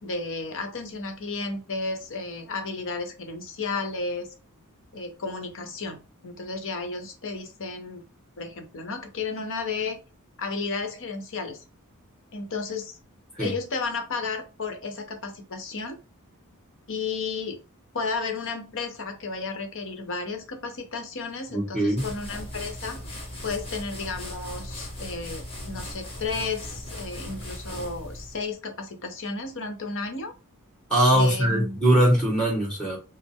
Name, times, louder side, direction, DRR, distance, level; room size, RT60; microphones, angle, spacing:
voice 1, 0.0-4.3 4.9-8.0 8.4-10.0 10.4-11.6 12.3-13.0 13.4-16.0 16.9-17.6 17.9-23.0 23.4-30.3 31.1-31.8, left 4 dB, 60° left, 0.9 m, -33 dB
voice 2, 21.5-22.0 30.9-33.0, right 1 dB, 5° left, 1.6 m, -21 dB
sound 1, 22.0-28.5, left 1 dB, 25° left, 1.2 m, -38 dB
5.2 x 2.0 x 3.6 m
head